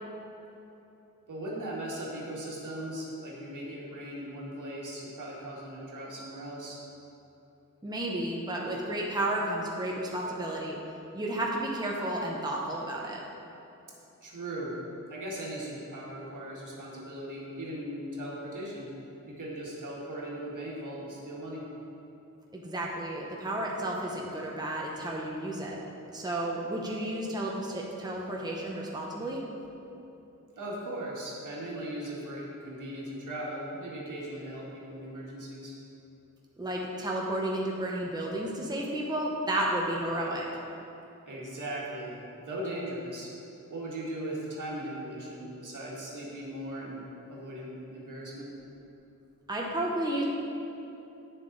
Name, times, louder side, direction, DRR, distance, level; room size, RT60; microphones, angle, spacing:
voice 1, 1.3-6.8 14.2-14.8 15.1-18.9 19.2-21.6 30.6-35.7 41.3-43.3 43.7-48.5, right 1 dB, 70° right, -4 dB, 1.8 m, -38 dB
voice 2, 7.8-10.8 11.1-13.2 22.5-25.8 26.1-29.4 36.6-40.5 49.5-50.2, right 1 dB, 10° right, -2 dB, 0.9 m, -32 dB
9.0 x 6.8 x 4.0 m, 3.0 s
wide cardioid pair, 120°, 32 cm